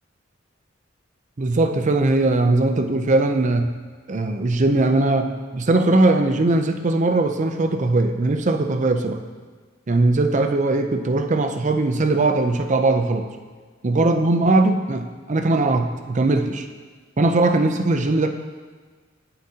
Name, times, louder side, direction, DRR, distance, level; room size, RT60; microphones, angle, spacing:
voice 1, 1.4-3.7 4.1-9.2 9.9-13.3 13.8-16.7 17.2-18.3, right 2 dB, 40° right, 7 dB, 0.5 m, -20 dB
9.6 x 8.8 x 2.8 m, 1.5 s
head